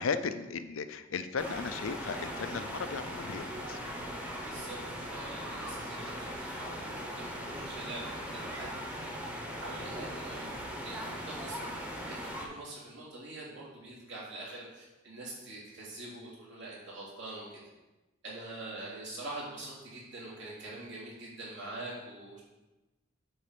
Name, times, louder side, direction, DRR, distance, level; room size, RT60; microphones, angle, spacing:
voice 1, 0.0-3.9, left 5 dB, 70° left, 11 dB, 0.5 m, -36 dB
sound 1, 1.4-12.4, equal, 5° right, 1.1 m, -39 dB
voice 2, 4.4-8.7 9.1-9.3 9.6-10.6 10.8-17.6 18.2-22.4, right 2 dB, 60° right, -6 dB, 3.2 m, -44 dB
8.5 x 4.1 x 6.8 m, 1.1 s
head